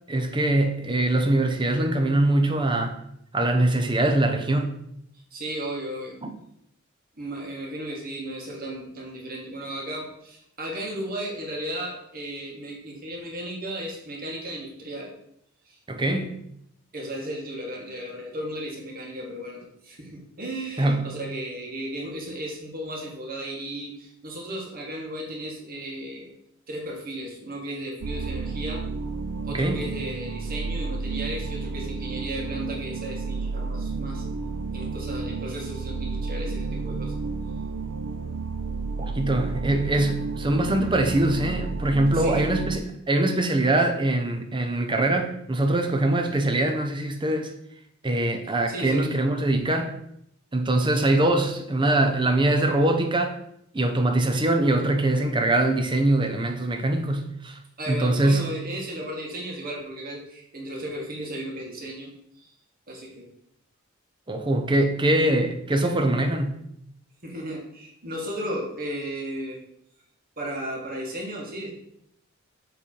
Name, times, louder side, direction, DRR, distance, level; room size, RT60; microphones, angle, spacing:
voice 1, 0.1-3.0 3.3-4.7 6.2-6.3 15.9-16.4 20.8-21.2 29.5-29.8 39.0-47.5 48.0-49.9 50.5-53.4 53.7-57.6 57.9-58.5 64.3-66.6, right 1 dB, 25° right, 0.7 m, -23 dB
voice 2, 5.3-6.2 7.2-15.1 15.7-15.8 16.9-26.3 26.7-28.8 29.4-34.2 34.7-37.1 42.1-42.5 48.7-49.1 57.8-62.1 62.4-62.5 62.9-63.3 67.2-69.6 70.4-71.7, right 1 dB, 45° right, 1.6 m, -35 dB
sound 1, 28.0-42.8, right 4 dB, 75° right, 0.4 m, -31 dB
7.1 x 3.4 x 4.5 m
head